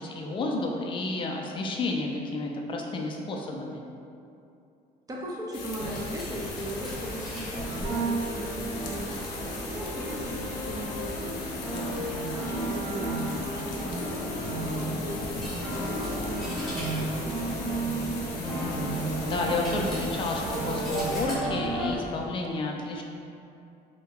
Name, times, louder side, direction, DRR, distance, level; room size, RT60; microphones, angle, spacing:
voice 1, 0.0-3.9 11.7-12.0 18.4-18.8 19.3-23.0, left 2 dB, 30° left, 0 dB, 0.4 m, -31 dB
voice 2, 5.1-9.2 9.7-11.5 12.1-17.9, equal, 20° right, -3 dB, 0.6 m, -38 dB
sound 1, 5.5-21.3, left 5 dB, 85° left, 0.5 m, -41 dB
Coin (dropping), 5.6-22.2, left 1 dB, ahead, 1.0 m, -38 dB
sound 2, 5.8-6.0 7.5-21.9, right 2 dB, 80° right, 0.8 m, -33 dB
2.7 x 2.2 x 3.7 m, 2.6 s
cardioid pair, 110°, 17 cm